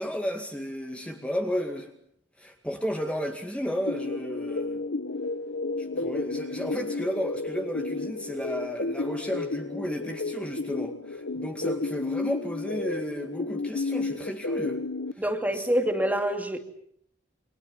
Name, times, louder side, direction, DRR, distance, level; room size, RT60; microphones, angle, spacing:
voice 1, 0.0-1.9 2.4-4.8 5.8-14.8 15.5-15.9, equal, 5° left, 3 dB, 2.2 m, -33 dB
sound 1, 3.9-15.1, left 3 dB, 90° left, 1.0 m, -32 dB
voice 2, 15.2-16.6, right 1 dB, 10° right, 6 dB, 2.5 m, -26 dB
29.0 x 23.0 x 7.4 m, 0.67 s
head